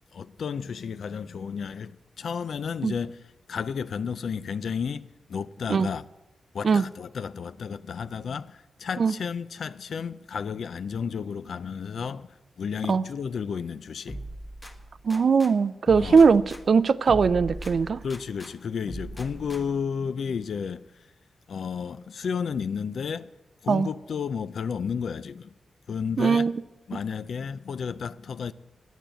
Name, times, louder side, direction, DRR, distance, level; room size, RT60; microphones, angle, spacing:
voice 1, 0.1-3.2 3.5-6.0 6.5-12.3 12.6-14.2 16.0-16.2 18.0-20.9 21.5-23.3 23.6-25.5 25.9-26.5 26.9-28.5, left 6 dB, 70° left, 0.4 m, -32 dB
sound 1, 14.1-15.5 15.9-18.5 18.9-19.9, equal, 20° left, 1.3 m, -39 dB
voice 2, 15.0-18.0 23.7-23.9 26.2-26.6, right 5 dB, 60° right, 0.4 m, -20 dB
10.0 x 9.2 x 7.7 m
wide cardioid pair, 110°, 0 cm